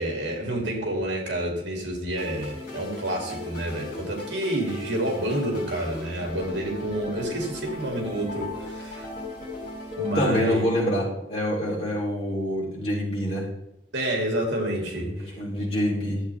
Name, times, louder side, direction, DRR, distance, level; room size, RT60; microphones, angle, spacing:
voice 1, 0.0-9.1 10.0-10.6 13.9-15.7, right 1 dB, 70° right, 1 dB, 2.8 m, -29 dB
sound 1, 2.2-10.2, left 2 dB, 45° left, 4.0 m, -37 dB
voice 2, 10.1-13.4 14.9-16.2, equal, 30° left, -6 dB, 3.6 m, -26 dB
12.5 x 8.1 x 3.5 m, 0.86 s
head